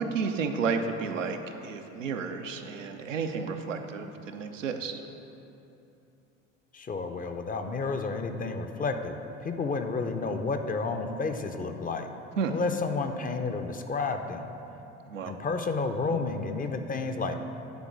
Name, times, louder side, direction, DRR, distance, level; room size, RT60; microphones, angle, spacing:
voice 1, 0.0-5.0 12.4-12.6 15.1-15.4, right 5 dB, 85° right, 5 dB, 0.6 m, -32 dB
voice 2, 6.7-12.1 12.5-14.5 15.3-17.4, left 4 dB, 20° left, 7 dB, 0.6 m, -31 dB
10.5 x 3.7 x 6.1 m, 2.9 s
hypercardioid pair, 65°, 37 cm